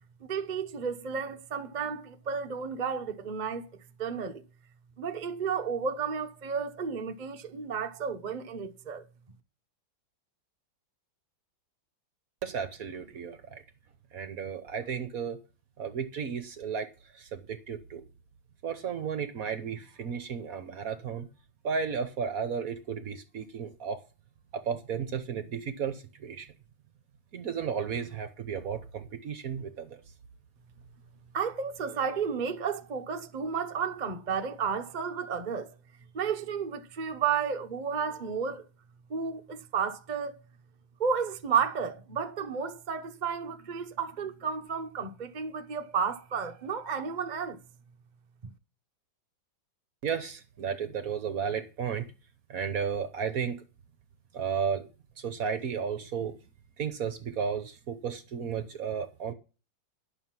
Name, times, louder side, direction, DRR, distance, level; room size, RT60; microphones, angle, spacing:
voice 1, 0.3-3.7 4.0-4.4 5.0-9.0 31.3-35.7 36.1-38.6 39.1-40.4 41.0-47.6 48.4-48.5, right 6 dB, 35° right, 0.7 m, -32 dB
voice 2, 12.4-13.6 14.1-15.4 15.8-16.9 17.1-18.0 18.6-21.3 21.6-24.0 24.5-26.5 27.3-30.0 50.0-52.1 52.5-53.6 54.3-54.9 55.2-56.4 56.8-59.3, right 7 dB, 55° right, 1.1 m, -33 dB
11.0 x 6.7 x 5.9 m
omnidirectional pair, 2.1 m